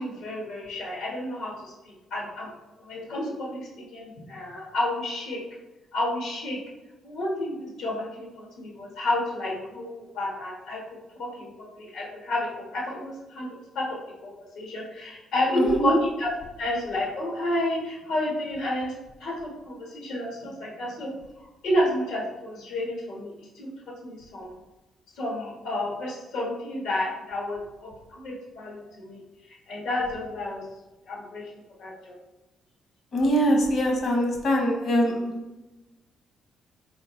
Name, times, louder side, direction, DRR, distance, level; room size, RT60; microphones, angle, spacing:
voice 1, 0.0-2.5 2.8-5.4 5.9-6.6 7.0-10.8 11.2-13.5 13.7-14.0 14.2-16.3 16.6-18.9 19.2-21.1 21.6-23.7 24.0-24.5 25.2-29.2 29.7-30.6 31.1-31.4 31.8-32.1, left 1 dB, 85° left, -3 dB, 1.5 m, -30 dB
voice 2, 15.5-16.0 33.1-35.6, equal, 55° left, 1 dB, 1.1 m, -23 dB
4.4 x 3.5 x 3.2 m, 1.1 s
cardioid pair, 90°, 0 cm